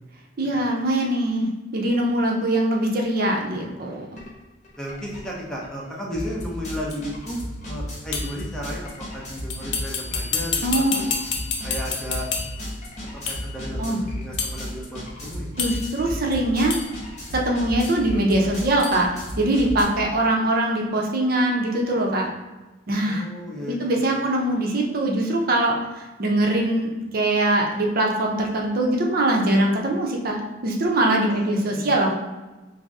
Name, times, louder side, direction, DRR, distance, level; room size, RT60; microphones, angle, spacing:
voice 1, 0.4-4.2 10.6-11.0 13.8-14.0 15.6-16.8 17.3-19.1 19.4-22.3 22.9-23.3 23.7-32.1, right 1 dB, 50° right, 0 dB, 0.6 m, -22 dB
sound 1, 4.2-4.3 4.6-19.8, equal, 40° left, 0.8 m, -34 dB
voice 2, 4.8-11.1 11.6-12.3 13.3-15.5 23.1-24.2 31.3-31.9, equal, 5° left, -4 dB, 0.7 m, -34 dB
sound 2, 6.9-7.0 8.1-8.4 9.5-12.7 13.3-13.5 14.4-14.6 15.6-16.0 16.7-17.0 17.8-18.0 18.8-19.0, left 5 dB, 75° left, 0.5 m, -29 dB
3.9 x 2.0 x 3.5 m, 1.1 s
head